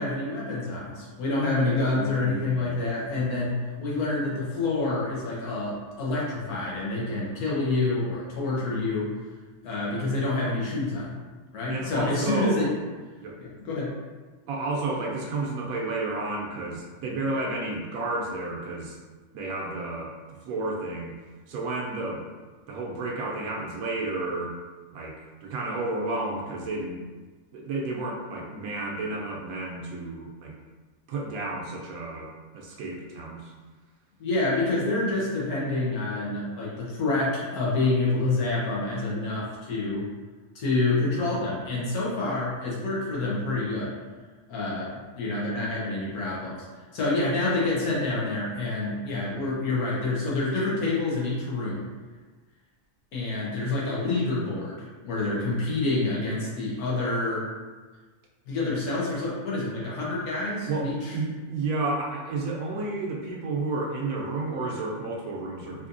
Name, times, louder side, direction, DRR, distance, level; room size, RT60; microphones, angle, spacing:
voice 1, 0.0-9.1 9.6-11.1 11.5-12.7 13.4-13.9 34.2-40.0 40.5-44.0 44.5-46.6 46.9-51.9 53.1-57.4 58.5-61.1, left 2 dB, 85° left, -6 dB, 1.5 m, -27 dB
voice 2, 1.9-2.7 3.2-3.3 11.7-12.7 13.2-13.4 14.5-19.0 19.3-20.1 20.4-21.1 21.5-22.3 22.7-24.5 24.9-25.2 25.4-27.0 27.5-30.5 31.1-33.5 60.6-65.9, right 2 dB, 80° right, -1 dB, 1.1 m, -31 dB
4.1 x 2.7 x 2.6 m, 1.3 s
omnidirectional pair, 1.5 m